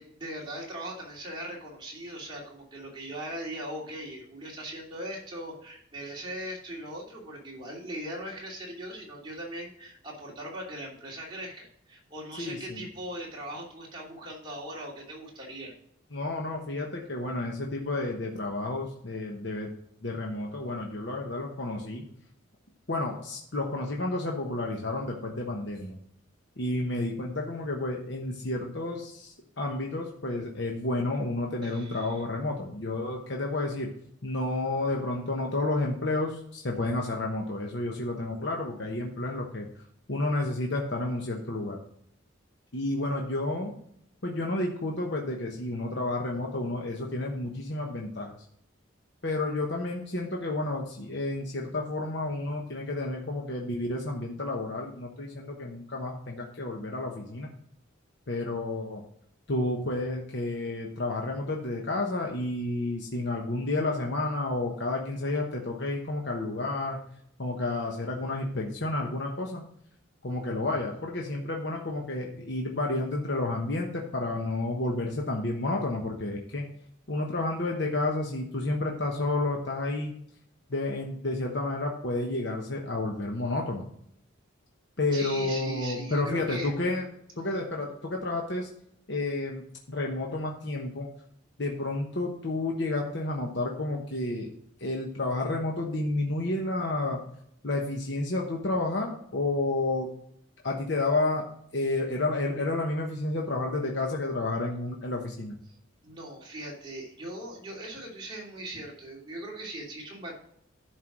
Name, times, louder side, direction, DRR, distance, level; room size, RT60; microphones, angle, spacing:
voice 1, 0.0-15.7 31.6-32.2 85.1-86.7 87.5-87.6 106.0-110.3, right 1 dB, 20° right, -3 dB, 2.7 m, -40 dB
voice 2, 12.4-12.9 16.1-19.7 20.0-22.1 22.9-26.0 26.6-33.9 34.2-39.8 40.1-41.8 42.7-43.7 44.2-48.3 49.2-57.5 58.3-59.0 59.5-67.0 67.4-69.6 70.2-76.7 77.1-80.1 80.7-83.9 85.0-87.1 87.4-88.7 89.1-91.1 91.6-94.5 94.8-97.2 97.6-100.1 100.6-101.5 101.7-105.6, left 2 dB, 55° left, 0 dB, 1.1 m, -31 dB
11.0 x 4.7 x 6.0 m, 0.70 s
head